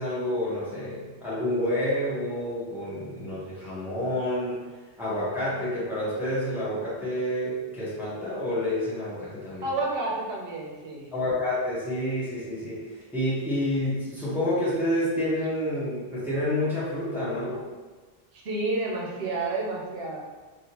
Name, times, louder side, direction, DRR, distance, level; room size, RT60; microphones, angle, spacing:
voice 1, 0.0-4.6 5.0-9.7 11.1-17.6, left 1 dB, ahead, -10 dB, 1.0 m, -29 dB
voice 2, 9.6-11.1 18.3-20.2, right 2 dB, 75° right, -1 dB, 0.9 m, -30 dB
3.5 x 2.5 x 2.9 m, 1.3 s
omnidirectional pair, 1.1 m